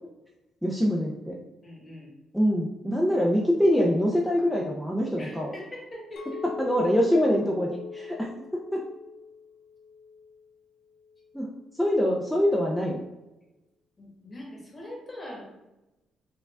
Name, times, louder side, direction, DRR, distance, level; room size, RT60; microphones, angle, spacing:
voice 1, 0.6-1.4 2.3-5.5 6.4-8.8 11.3-13.0, equal, ahead, -3 dB, 0.4 m, -25 dB
voice 2, 1.6-2.1 5.2-6.4 14.0-15.4, left 1 dB, 30° left, -2 dB, 1.2 m, -42 dB
Chink clink, 6.2-10.5 11.0-11.3, left 5 dB, 75° left, 0.5 m, -42 dB
4.4 x 2.3 x 2.4 m, 0.98 s
cardioid pair, 90°, 0 cm